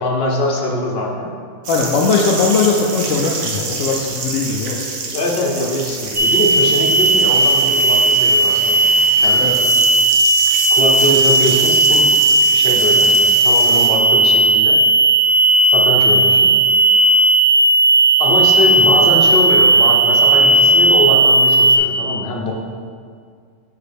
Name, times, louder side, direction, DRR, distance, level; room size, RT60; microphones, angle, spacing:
voice 1, 0.0-1.3 4.6-4.7 5.1-8.8 9.2-9.5 10.7-12.1 12.5-14.8 15.7-16.5 18.2-22.5, left 1 dB, 50° left, -1 dB, 1.1 m, -22 dB
sound 1, 1.6-13.9, right 4 dB, 65° right, 1.1 m, -27 dB
voice 2, 1.7-4.8 9.4-9.6, left 4 dB, 75° left, -1 dB, 0.9 m, -18 dB
sound 2, 6.2-21.8, right 2 dB, 35° right, 0.4 m, -14 dB
6.5 x 5.7 x 3.4 m, 2.1 s
omnidirectional pair, 1.4 m